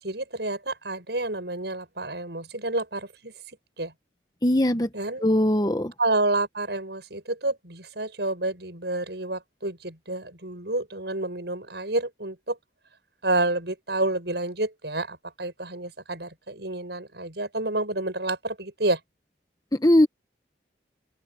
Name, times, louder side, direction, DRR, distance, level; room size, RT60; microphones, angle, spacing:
voice 1, 0.0-3.9 4.9-5.2 6.0-12.6 13.2-19.0, right 2 dB, 70° right, 7.3 m, -29 dB
voice 2, 4.4-4.9 5.2-5.9 19.7-20.1, left 1 dB, 20° left, 1.2 m, -20 dB
open air
head